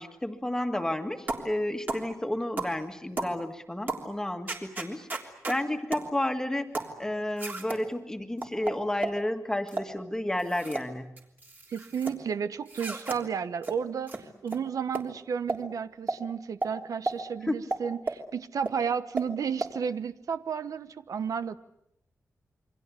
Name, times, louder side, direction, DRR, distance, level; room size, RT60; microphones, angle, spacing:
voice 1, 0.0-11.2 17.4-17.7, left 1 dB, 10° left, 6 dB, 1.9 m, -32 dB
sound 1, 1.3-1.5 1.9-2.1 2.6-2.8 3.2-3.4 3.9-4.1 4.5-5.6 5.9-6.1 6.7-7.0 7.4-7.8 8.4-9.2 9.7-9.9 10.4-10.9 11.2-12.1 12.7-13.2 13.6-13.8 14.1-14.2 14.5-14.6 14.9-15.1 15.5-15.6 16.1-16.2 16.6-16.7 17.1-17.2 17.7-18.2 18.7-18.8 19.2-19.3 19.6-19.7, right 2 dB, 35° right, 3.3 m, -33 dB
voice 2, 11.7-21.6, right 7 dB, 85° right, 12 dB, 1.1 m, -32 dB
28.5 x 24.0 x 8.4 m, 0.78 s
wide cardioid pair, 180°, 6 cm